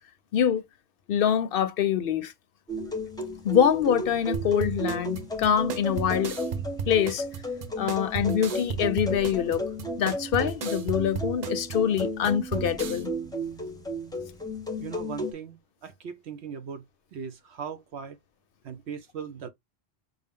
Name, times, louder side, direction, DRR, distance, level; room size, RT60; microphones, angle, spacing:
voice 1, 0.3-0.6 1.1-2.3 3.4-6.4 6.9-7.2 7.8-9.6 10.0-13.1, left 9 dB, 60° left, 0.7 m, -25 dB
sound 1, 2.7-15.3, equal, 5° left, 0.6 m, -34 dB
sound 2, 4.3-13.0, right 6 dB, 50° right, 0.5 m, -35 dB
voice 2, 14.8-16.8 17.1-18.2 18.6-19.5, right 6 dB, 75° right, 1.0 m, -38 dB
5.4 x 2.0 x 3.6 m
omnidirectional pair, 1.1 m